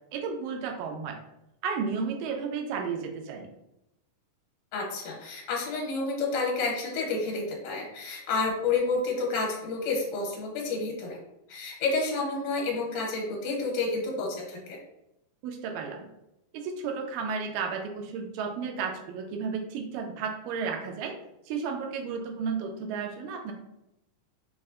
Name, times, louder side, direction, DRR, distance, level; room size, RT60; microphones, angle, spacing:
voice 1, 0.1-1.2 1.6-3.5 15.4-16.1 16.5-21.1 21.5-23.5, right 5 dB, 90° right, 3 dB, 2.3 m, -33 dB
voice 2, 4.7-11.2 11.5-14.8, left 3 dB, 70° left, -1 dB, 2.2 m, -30 dB
5.5 x 2.1 x 3.5 m, 0.85 s
omnidirectional pair, 3.8 m